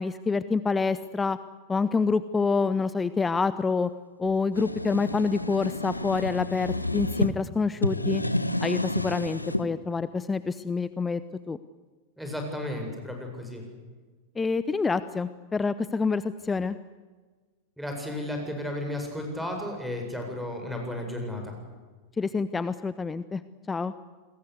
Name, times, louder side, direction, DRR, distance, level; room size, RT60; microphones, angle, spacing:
voice 1, 0.0-1.4 1.7-3.9 4.2-8.2 8.6-11.2 11.5-11.6 14.4-16.8 22.2-23.4 23.7-23.9, left 4 dB, 15° left, 15 dB, 0.8 m, -27 dB
sound 1, 4.2-7.3 7.7-9.7, left 1 dB, 85° left, 1.2 m, -30 dB
voice 2, 12.2-13.7 17.8-21.5, left 1 dB, ahead, 2 dB, 7.4 m, -33 dB
28.5 x 21.0 x 8.2 m, 1.4 s
figure-of-eight pair, 90°, 0 cm